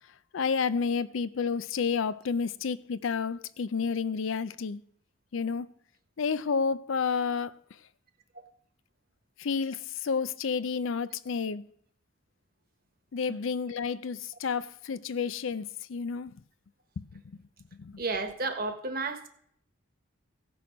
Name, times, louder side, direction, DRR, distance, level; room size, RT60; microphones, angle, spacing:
voice 1, 0.3-4.8 5.3-5.7 6.2-7.6 9.4-11.7 13.1-16.4 17.0-17.2 17.7-18.0, left 5 dB, 70° left, 0.5 m, -30 dB
voice 2, 18.0-19.3, right 3 dB, 45° right, 1.3 m, -32 dB
16.0 x 6.3 x 5.2 m
head